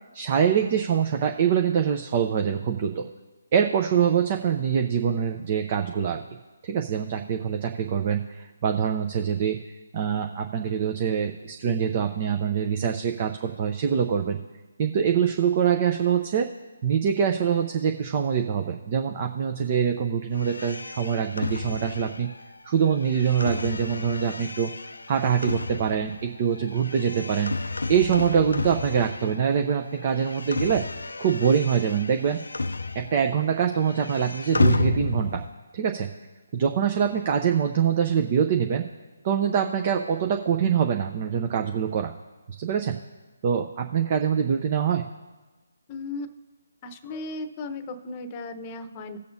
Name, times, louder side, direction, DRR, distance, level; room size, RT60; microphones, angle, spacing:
voice 1, 0.1-3.1 3.5-6.2 6.6-9.6 9.9-14.4 14.8-16.5 16.8-22.3 22.6-24.7 25.1-27.5 27.9-30.8 31.2-32.4 32.9-35.4 35.7-36.1 36.5-38.9 39.2-42.1 42.6-43.0 43.4-45.0, right 7 dB, 35° right, 4 dB, 0.7 m, -24 dB
sound 1, 20.4-29.6 29.9-33.4 33.6-35.5, left 3 dB, 80° left, 0.4 m, -31 dB
voice 2, 45.9-46.3 46.8-49.2, left 3 dB, 25° left, 10 dB, 0.9 m, -36 dB
18.0 x 6.7 x 2.7 m, 1.2 s
figure-of-eight pair, 145°, 0 cm